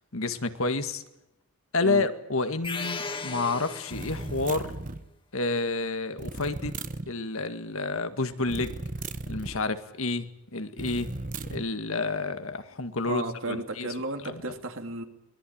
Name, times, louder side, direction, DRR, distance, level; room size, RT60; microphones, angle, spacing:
voice 1, 0.1-1.0 1.7-4.7 5.3-6.7 7.1-8.8 9.3-11.1 11.5-13.9 14.2-14.4, left 3 dB, 65° left, 9 dB, 1.9 m, -29 dB
sound 1, 2.6-4.5, left 4 dB, 25° left, 2.0 m, -36 dB
sound 2, 3.9-5.1 6.2-7.1 8.5-9.6 10.8-11.7, right 2 dB, 35° right, 1.1 m, -36 dB
voice 2, 13.0-15.0, right 2 dB, 60° right, 6 dB, 2.7 m, -33 dB
24.0 x 20.0 x 8.8 m, 0.86 s
head